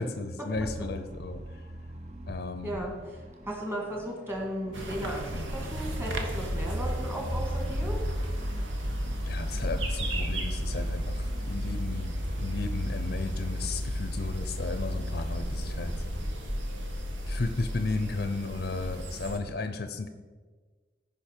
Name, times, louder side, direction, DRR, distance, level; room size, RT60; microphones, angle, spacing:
voice 1, 0.0-1.6 2.3-2.7 9.2-15.9 17.3-20.1, left 3 dB, 55° left, 8 dB, 0.6 m, -34 dB
sound 1, 0.5-13.7, right 1 dB, 35° right, 0.6 m, -44 dB
voice 2, 2.6-8.0, equal, 10° right, -1 dB, 1.8 m, -36 dB
sound 2, 4.7-19.4, equal, 90° right, 1.2 m, -33 dB
14.5 x 5.4 x 4.5 m, 1.4 s
head